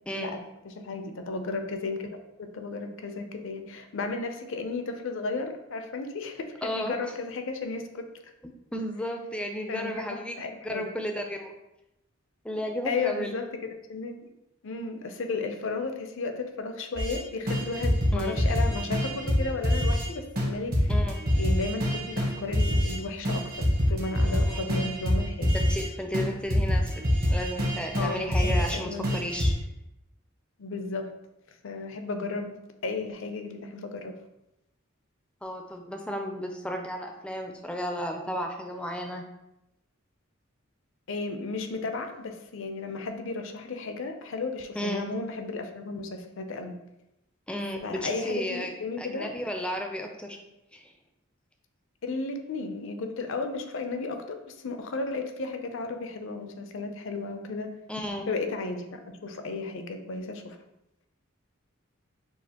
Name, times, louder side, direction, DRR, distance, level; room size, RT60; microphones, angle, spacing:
voice 1, 0.1-0.4 6.6-7.0 8.7-10.4 10.6-11.5 12.4-13.3 18.1-18.4 20.9-21.2 24.3-24.6 25.5-29.5 35.4-39.2 44.7-45.1 47.5-50.4 50.7-50.9 57.9-58.3, equal, 5° left, 4 dB, 0.4 m, -33 dB
voice 2, 0.7-8.0 9.7-10.9 12.8-13.5 13.9-14.1 14.6-20.9 21.4-25.5 28.0-29.2 30.6-31.1 31.6-32.5 32.8-34.1 41.1-46.7 47.8-49.3 52.0-57.7 58.3-60.6, left 3 dB, 65° left, 6 dB, 0.5 m, -34 dB
sound 1, 17.0-17.2 17.5-20.1 20.4-20.5 20.7-23.0 23.2-25.9 26.1-28.7 29.0-29.5, equal, 45° right, 1.0 m, -25 dB
6.3 x 2.4 x 2.8 m, 0.90 s
head